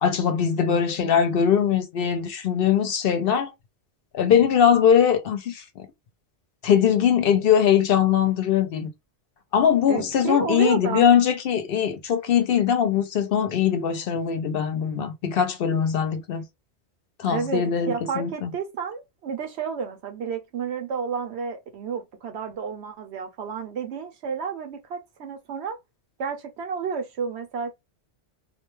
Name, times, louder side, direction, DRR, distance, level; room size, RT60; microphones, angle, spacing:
voice 1, 0.0-3.5 4.1-5.9 6.6-8.9 9.5-16.4 17.2-18.5, left 8 dB, 65° left, 0.7 m, -21 dB
voice 2, 9.9-11.1 17.3-25.8 26.2-27.7, right 6 dB, 75° right, 0.9 m, -31 dB
2.5 x 2.2 x 3.0 m
omnidirectional pair, 1.1 m